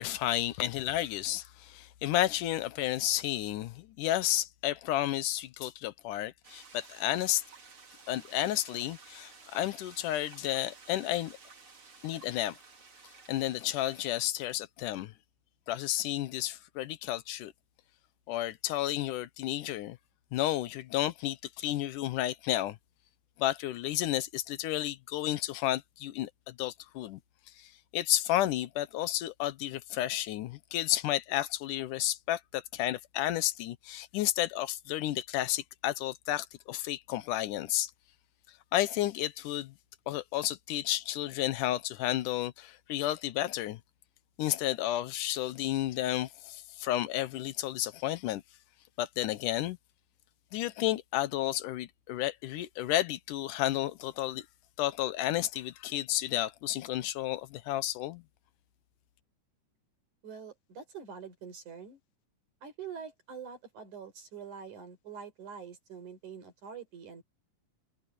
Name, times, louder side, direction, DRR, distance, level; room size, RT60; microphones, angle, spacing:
voice 1, 0.0-7.4 8.1-11.4 12.0-12.6 13.3-15.1 15.7-17.5 18.3-20.0 20.3-22.8 23.4-27.2 27.6-37.9 38.5-39.7 40.1-43.8 44.4-48.4 49.0-49.8 50.5-54.5 54.8-58.2, left 14 dB, 85° left, 2.4 m, -32 dB
sound 1, 6.4-14.1, right 4 dB, 45° right, 3.9 m, -54 dB
voice 2, 60.2-62.0 62.6-67.2, right 6 dB, 70° right, 5.9 m, -45 dB
omnidirectional pair, 3.6 m